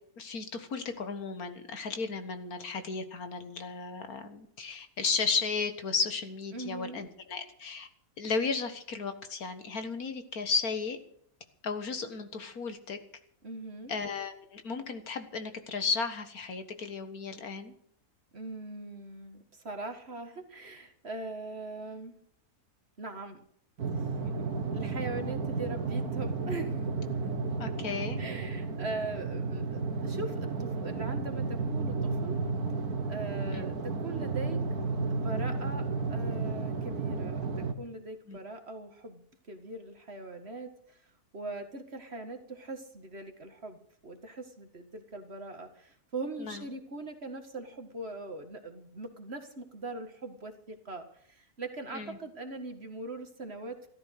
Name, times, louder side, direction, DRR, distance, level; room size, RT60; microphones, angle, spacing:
voice 1, 0.2-7.9 8.2-11.0 11.6-13.0 13.9-17.7 24.2-24.5 27.6-28.2 33.5-33.6 38.3-38.4 46.4-46.6 51.9-52.2, left 5 dB, 70° left, 9 dB, 2.0 m, -34 dB
voice 2, 6.5-7.0 13.4-13.9 18.3-22.1 23.0-23.4 24.7-26.8 28.2-32.4 33.1-34.6 35.1-41.0 41.3-53.8, right 2 dB, 45° right, 6 dB, 2.0 m, -41 dB
sound 1, 23.8-37.7, right 4 dB, 80° right, 2.0 m, -33 dB
14.5 x 13.0 x 6.6 m, 0.63 s
omnidirectional pair, 1.6 m